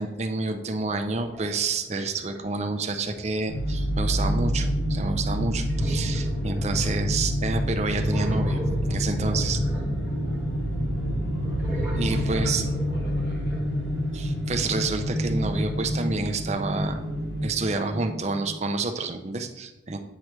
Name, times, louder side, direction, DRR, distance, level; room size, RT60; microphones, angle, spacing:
voice 1, 0.0-9.6 12.0-12.6 14.1-17.0 17.4-20.0, right 3 dB, 35° right, 6 dB, 0.5 m, -29 dB
sound 1, 1.0-2.4 3.0-3.4 5.7-7.4 7.8-10.7 11.4-14.0, equal, 5° right, 1.6 m, -36 dB
sound 2, 3.5-17.5, equal, 85° left, 1.3 m, -27 dB
sound 3, 9.8-18.6, right 1 dB, 90° right, 0.7 m, -37 dB
voice 2, 10.1-11.8 12.3-13.6, left 1 dB, 60° left, 0 dB, 0.7 m, -39 dB
8.4 x 4.5 x 3.2 m, 0.95 s
head